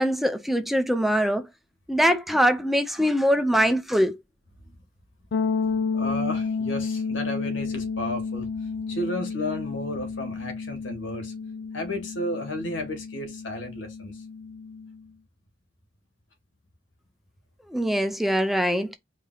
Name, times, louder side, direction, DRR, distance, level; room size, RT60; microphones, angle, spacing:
voice 1, 0.0-1.5 1.9-4.2 17.7-19.0, equal, ahead, 0.4 m, -23 dB
sound 1, 5.3-15.0, left 5 dB, 60° left, 0.4 m, -31 dB
voice 2, 5.9-11.3 11.7-14.2, left 1 dB, 85° left, 1.8 m, -33 dB
5.0 x 2.7 x 3.8 m
head